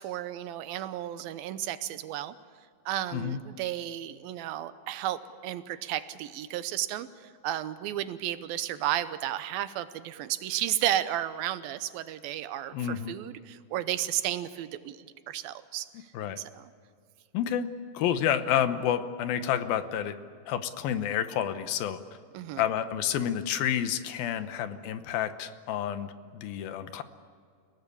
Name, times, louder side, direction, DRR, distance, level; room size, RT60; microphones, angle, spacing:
voice 1, 0.0-2.3 2.9-16.7 22.3-22.6, right 12 dB, 85° right, 13 dB, 2.7 m, -33 dB
voice 2, 12.7-13.1 16.1-16.4 17.3-17.7 17.9-20.2 20.5-22.0 22.6-27.0, left 9 dB, 80° left, 10 dB, 2.9 m, -29 dB
29.0 x 17.5 x 8.6 m, 2.1 s
omnidirectional pair, 4.2 m